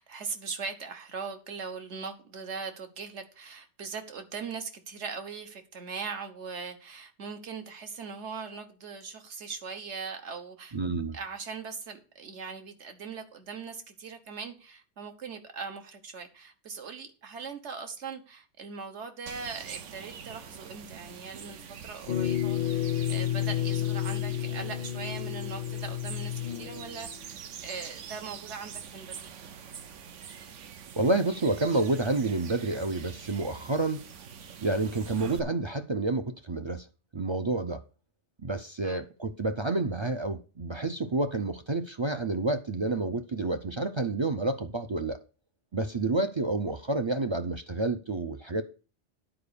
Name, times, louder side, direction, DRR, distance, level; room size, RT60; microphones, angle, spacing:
voice 1, 0.0-10.8 11.1-29.3 38.8-39.0, right 5 dB, 70° right, 1.5 m, -40 dB
voice 2, 10.7-11.2 31.0-34.0 34.6-36.9 37.1-37.8 38.4-45.2 45.7-48.6, right 2 dB, 40° right, 0.4 m, -29 dB
sound 1, 19.3-35.4, right 7 dB, 85° right, 1.1 m, -45 dB
sound 2, 22.1-27.1, left 11 dB, 60° left, 0.7 m, -31 dB
10.0 x 4.8 x 6.8 m
omnidirectional pair, 1.2 m